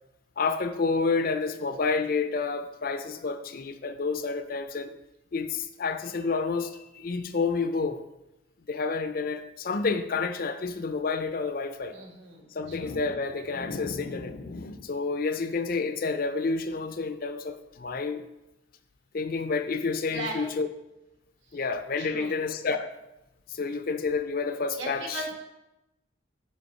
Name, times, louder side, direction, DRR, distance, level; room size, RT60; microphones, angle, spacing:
voice 1, 0.4-4.9 5.3-8.0 8.7-12.0 12.5-18.2 19.1-20.7 21.5-22.9 23.5-25.2, left 4 dB, 45° left, 0.4 m, -29 dB
voice 2, 11.9-13.0 20.1-20.5 21.5-21.6 22.0-22.4 24.8-25.4, right 2 dB, 70° right, 1.5 m, -38 dB
5.2 x 5.0 x 5.4 m
head